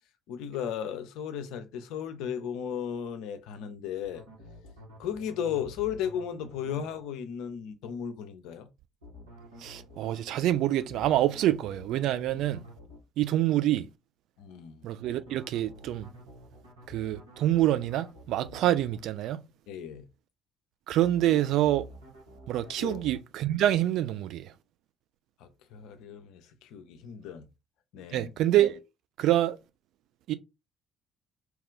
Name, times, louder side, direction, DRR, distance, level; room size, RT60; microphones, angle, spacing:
voice 1, 0.3-4.2 5.0-8.7 14.4-14.9 19.7-20.1 22.8-23.0 25.4-27.5 27.9-28.3, left 8 dB, 65° left, 0.5 m, -35 dB
sound 1, 4.0-7.0 9.0-13.0 15.0-19.0 21.0-23.2, equal, 85° right, 1.1 m, -49 dB
voice 2, 9.6-12.6 13.2-13.9 14.8-16.1 16.9-19.4 20.9-21.9 22.5-24.5 28.1-28.8 29.2-29.6 30.3-30.4, right 13 dB, 60° right, 0.3 m, -26 dB
2.9 x 2.4 x 3.6 m
figure-of-eight pair, 50°, 0 cm